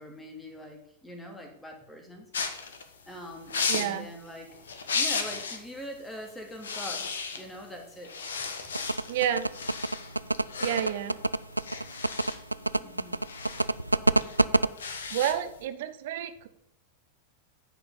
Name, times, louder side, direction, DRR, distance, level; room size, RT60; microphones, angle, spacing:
voice 1, 0.0-2.3 3.1-4.6 4.9-7.1 7.4-8.1 12.8-13.2, equal, 5° left, 2 dB, 2.5 m, -43 dB
sound 1, 2.3-5.7 6.0-6.2 6.5-7.7 8.0-15.6, left 5 dB, 65° left, 1.3 m, -35 dB
voice 2, 3.7-4.1 9.1-9.5 10.6-11.2 15.1-16.5, right 10 dB, 55° right, 11 dB, 0.9 m, -30 dB
sound 2, 8.7-14.7, right 2 dB, 85° right, 0.3 m, -25 dB
10.0 x 5.2 x 7.3 m, 0.76 s
figure-of-eight pair, 90°, 0 cm